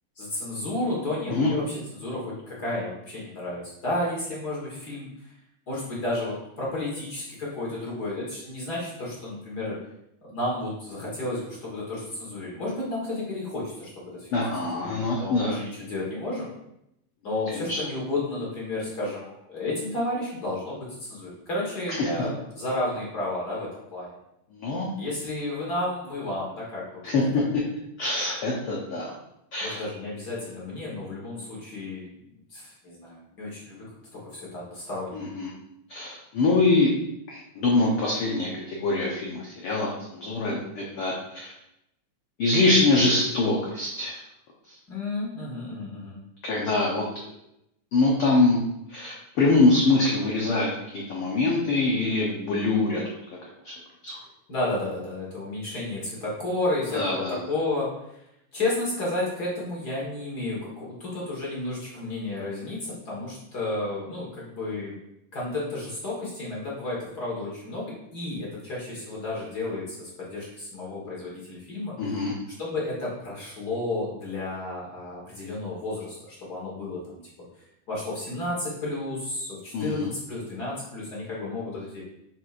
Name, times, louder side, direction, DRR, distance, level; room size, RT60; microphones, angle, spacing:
voice 1, 0.2-5.3 5.7-9.8 10.2-16.5 17.2-24.1 25.0-27.0 27.3-27.4 29.6-32.1 32.5-33.8 34.1-35.3 44.9-46.2 54.5-58.2 58.5-64.9 65.3-71.9 72.6-77.5 77.9-82.0, left 2 dB, 45° left, -5 dB, 1.3 m, -32 dB
voice 2, 14.3-15.5 17.5-17.8 21.9-22.1 24.5-24.9 27.0-27.4 28.0-29.1 29.5-29.8 35.1-35.5 35.9-36.9 37.3-41.5 42.4-44.2 44.7-44.8 46.4-47.3 47.9-48.6 48.9-53.0 53.6-53.7 54.0-54.2 56.9-57.4 72.0-72.3 79.7-80.1, left 2 dB, 90° left, -3 dB, 1.2 m, -24 dB
8.8 x 4.6 x 2.5 m, 0.82 s
omnidirectional pair, 3.8 m